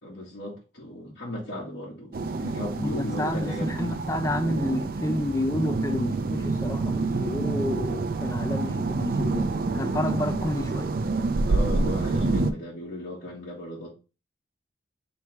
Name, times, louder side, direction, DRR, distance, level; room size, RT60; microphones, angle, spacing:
voice 1, 0.0-3.9 11.5-13.9, left 1 dB, 70° left, 1.5 m, -36 dB
sound 1, 2.1-12.5, right 3 dB, 55° right, 0.4 m, -27 dB
voice 2, 2.8-10.9, left 1 dB, 15° left, 0.4 m, -30 dB
3.3 x 3.2 x 4.6 m
head